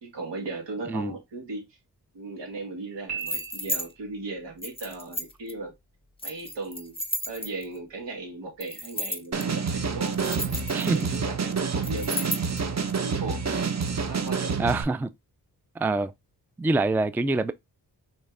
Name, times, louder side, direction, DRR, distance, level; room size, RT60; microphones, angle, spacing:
voice 1, 0.0-1.8 2.1-5.7 6.2-7.0 7.3-10.4 10.8-12.4 12.9-13.4 14.0-14.5, right 3 dB, 80° right, 1.8 m, -37 dB
Piano, 3.1-4.2, right 7 dB, 60° right, 2.6 m, -37 dB
sound 1, 3.2-3.9 4.6-5.5 6.2-7.8 8.6-9.4 10.1-11.2 11.8-12.6, left 1 dB, 15° left, 0.9 m, -33 dB
sound 2, 9.3-14.8, right 5 dB, 40° right, 0.8 m, -28 dB
voice 2, 10.7-11.2 14.6-15.1 15.8-16.1 16.6-17.5, right 2 dB, 5° right, 0.3 m, -25 dB
5.4 x 3.2 x 2.4 m
supercardioid pair, 45°, 42 cm